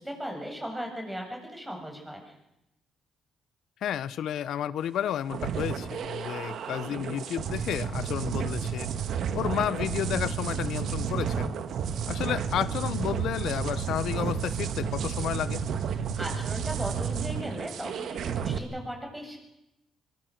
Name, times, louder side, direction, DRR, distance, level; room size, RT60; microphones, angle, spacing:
voice 1, 0.0-2.3 16.2-19.4, equal, 5° right, 2 dB, 7.7 m, -37 dB
voice 2, 3.8-8.9 9.3-11.5 12.1-15.6, left 10 dB, 75° left, 18 dB, 0.9 m, -31 dB
sound 1, 5.3-18.6, right 7 dB, 70° right, 1.7 m, -31 dB
23.5 x 22.5 x 6.6 m, 0.87 s
cardioid pair, 90°, 0 cm